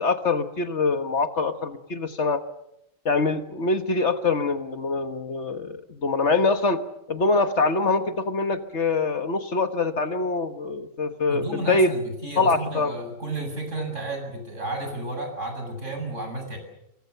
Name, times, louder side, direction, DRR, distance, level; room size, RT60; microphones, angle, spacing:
voice 1, 0.0-2.4 3.0-6.8 7.1-11.9 12.4-13.0, left 3 dB, 55° left, 8 dB, 1.7 m, -24 dB
voice 2, 11.3-16.6, right 2 dB, 65° right, 4 dB, 7.9 m, -32 dB
27.5 x 24.0 x 6.8 m, 0.81 s
omnidirectional pair, 1.4 m